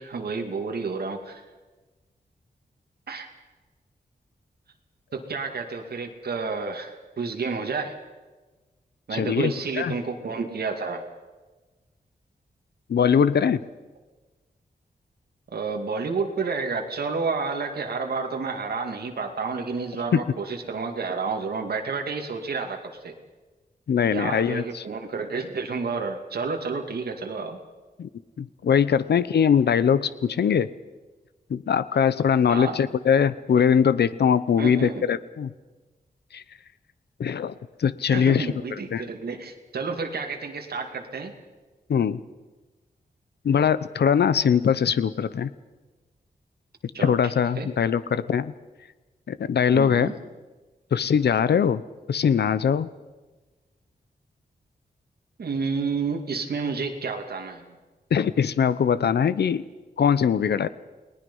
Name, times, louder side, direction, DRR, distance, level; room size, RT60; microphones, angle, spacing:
voice 1, 0.0-1.4 3.1-3.3 5.1-7.9 9.1-11.0 15.5-23.2 24.1-27.6 32.5-32.8 34.6-35.1 38.1-41.3 46.9-47.2 47.6-47.7 49.7-50.2 55.4-57.8, right 4 dB, 70° right, 3 dB, 2.4 m, -30 dB
voice 2, 9.1-9.9 12.9-13.6 23.9-24.8 28.0-28.1 28.4-30.7 31.5-35.5 36.3-36.4 37.2-37.5 37.8-39.0 41.9-42.2 43.4-45.5 47.0-48.5 49.3-50.1 50.9-51.8 52.1-52.9 58.1-59.6 60.0-60.7, left 7 dB, 85° left, 15 dB, 0.8 m, -22 dB
29.5 x 19.5 x 5.5 m, 1.2 s
wide cardioid pair, 180°, 17 cm